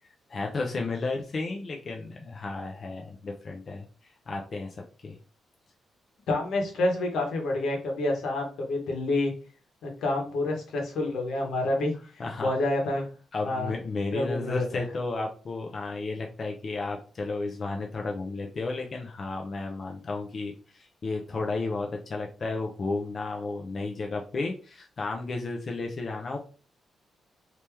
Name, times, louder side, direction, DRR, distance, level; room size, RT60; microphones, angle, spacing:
voice 1, 0.3-5.2 12.2-12.5 13.3-26.4, left 3 dB, 35° left, 1 dB, 0.5 m, -33 dB
voice 2, 6.3-9.3 9.8-13.1 13.4-13.7 14.1-14.8, left 2 dB, 85° left, 1 dB, 1.2 m, -28 dB
3.1 x 2.9 x 3.4 m, 0.37 s
wide cardioid pair, 170°, 0 cm